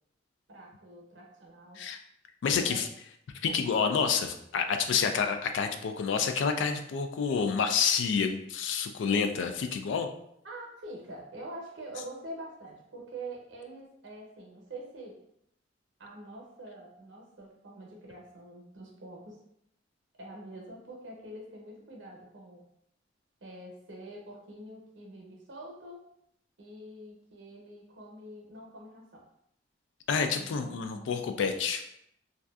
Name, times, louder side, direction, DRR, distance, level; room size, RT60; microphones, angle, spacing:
voice 1, 0.5-1.9 2.5-2.8 3.4-3.6 10.4-15.2 16.0-19.4 20.2-22.7 23.4-26.1 26.6-29.2 30.4-31.1, right 1 dB, 85° right, -1 dB, 0.7 m, -45 dB
voice 2, 2.4-2.9 3.4-10.1 30.1-31.9, left 6 dB, 80° left, 7 dB, 0.3 m, -28 dB
2.6 x 2.2 x 2.3 m, 0.73 s
head